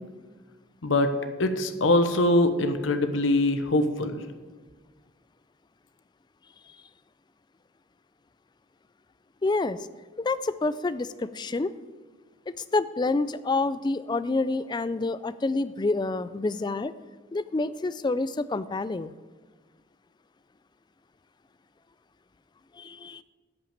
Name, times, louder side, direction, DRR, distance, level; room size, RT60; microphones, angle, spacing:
voice 1, 0.8-1.1 1.4-4.2, left 1 dB, 70° left, 9 dB, 0.9 m, -23 dB
voice 2, 9.4-9.8 10.2-11.7 12.5-16.9 17.3-19.1 22.7-23.2, left 3 dB, 20° left, 15 dB, 0.3 m, -28 dB
10.5 x 5.8 x 7.3 m, 1.3 s
head